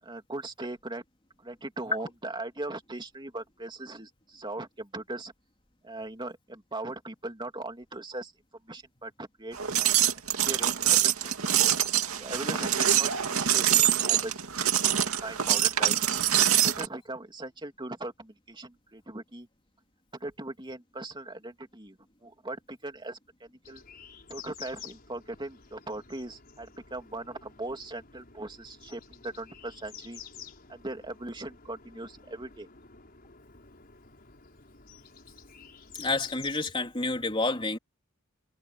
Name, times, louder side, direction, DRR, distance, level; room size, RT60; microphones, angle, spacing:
voice 1, 0.0-1.0 1.4-5.3 5.8-8.3 8.6-10.0 10.3-11.0 11.2-11.6 12.2-14.3 14.6-16.0 16.5-19.5 20.1-23.8 24.3-30.2 30.7-32.7, right 2 dB, 20° right, 3.0 m, -39 dB
sound 1, 9.5-16.9, right 10 dB, 85° right, 2.4 m, -24 dB
sound 2, 23.6-36.5, left 7 dB, 45° left, 5.3 m, -50 dB
voice 2, 36.0-37.8, left 3 dB, 25° left, 3.8 m, -29 dB
head